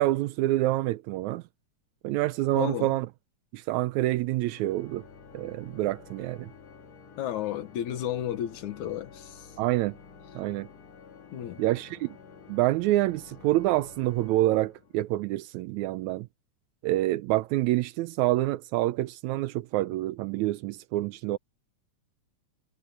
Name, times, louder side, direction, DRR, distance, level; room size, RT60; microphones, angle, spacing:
voice 1, 0.0-1.4 2.0-3.1 3.5-5.0 5.3-6.5 9.6-10.0 10.4-10.7 11.6-12.2 12.5-16.3 16.8-21.4, right 16 dB, 85° right, 2.0 m, -27 dB
voice 2, 2.5-2.9 7.2-9.5 11.3-11.6, left 11 dB, 85° left, 2.8 m, -33 dB
Organ, 4.4-15.2, left 6 dB, 60° left, 3.4 m, -50 dB
omnidirectional pair, 3.3 m